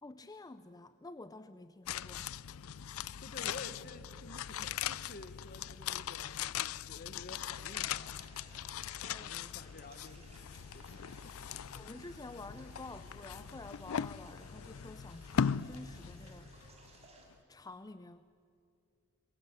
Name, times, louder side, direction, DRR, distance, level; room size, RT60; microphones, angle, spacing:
voice 1, 0.0-2.5 9.0-9.4 11.8-16.5 17.5-18.2, left 2 dB, 20° left, 12 dB, 0.5 m, -50 dB
sound 1, 1.9-17.0 17.3-17.4, left 8 dB, 85° left, 0.5 m, -40 dB
voice 2, 3.2-8.3 9.0-11.5, left 2 dB, 45° left, 11 dB, 1.5 m, -51 dB
sound 2, 7.7-17.3, right 2 dB, 30° right, 4.8 m, -60 dB
22.5 x 21.0 x 9.2 m, 2.6 s
head